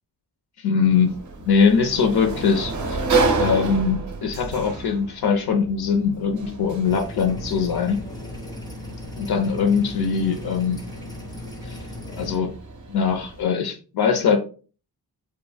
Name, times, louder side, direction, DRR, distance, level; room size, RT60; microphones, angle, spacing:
voice 1, 0.6-1.1 1.4-3.0 3.4-8.0 9.2-10.8 11.6-11.8 12.2-12.5 12.9-14.4, left 6 dB, 70° left, 5 dB, 0.5 m, -21 dB
Sliding door, 0.8-13.4, right 3 dB, 50° right, 0.5 m, -30 dB
sound 1, 6.8-12.4, left 2 dB, 10° left, 0.4 m, -37 dB
2.2 x 2.1 x 3.2 m, 0.37 s
wide cardioid pair, 160°, 40 cm